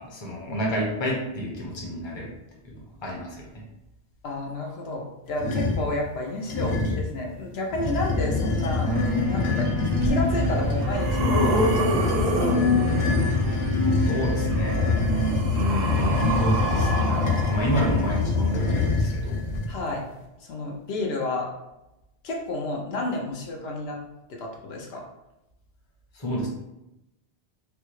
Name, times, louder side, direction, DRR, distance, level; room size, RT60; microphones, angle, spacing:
voice 1, 0.0-2.3 3.0-3.5 14.0-14.8 15.5-19.4 26.1-26.5, equal, 30° left, -2 dB, 0.7 m, -29 dB
voice 2, 4.2-8.9 9.3-9.7 10.0-12.6 19.7-20.0 20.4-21.5 22.2-24.0 24.3-25.0, left 2 dB, 85° left, 0 dB, 0.9 m, -31 dB
sound 1, 5.4-5.9 6.5-7.1 7.7-19.7, left 3 dB, 55° left, 0.3 m, -25 dB
sound 2, 8.9-15.3, left 2 dB, 85° right, 0.9 m, -29 dB
sound 3, 10.0-10.1 10.6-13.4 14.6-18.5 19.5-19.6, right 2 dB, 55° right, 0.6 m, -29 dB
3.3 x 2.3 x 3.0 m, 0.92 s
omnidirectional pair, 1.0 m